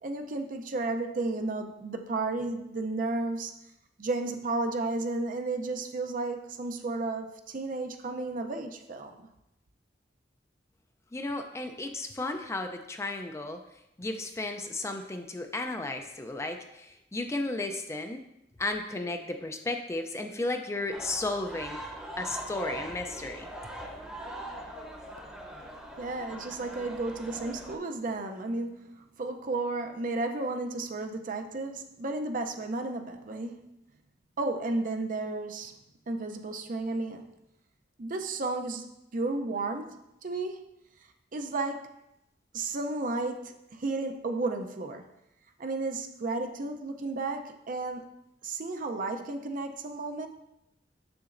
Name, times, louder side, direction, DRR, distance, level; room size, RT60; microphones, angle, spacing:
voice 1, 0.0-3.5 4.0-9.3 26.0-33.7 34.4-35.7 36.1-37.3 38.0-40.8 41.3-41.9 42.5-45.1 45.6-48.2 48.4-50.3, right 2 dB, 50° right, 6 dB, 0.6 m, -33 dB
voice 2, 11.1-13.6 14.0-18.2 18.6-21.8 22.2-23.5, left 2 dB, 15° left, 5 dB, 0.4 m, -34 dB
sound 1, 20.9-27.8, right 1 dB, 5° right, 0.8 m, -42 dB
7.0 x 6.8 x 2.5 m, 0.86 s
head